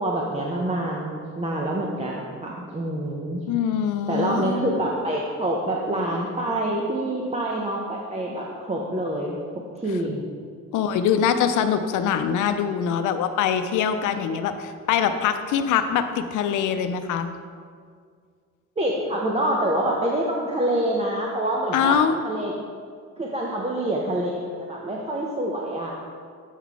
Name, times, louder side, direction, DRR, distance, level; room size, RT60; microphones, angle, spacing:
voice 1, 0.0-3.4 4.1-9.4 9.8-10.3 18.8-22.5 23.2-25.9, right 1 dB, 20° right, -2 dB, 0.8 m, -26 dB
voice 2, 3.5-4.7 10.7-17.3 21.7-22.2, left 8 dB, 80° left, 9 dB, 0.6 m, -23 dB
8.2 x 4.0 x 4.7 m, 2.1 s
cardioid pair, 90°, 30 cm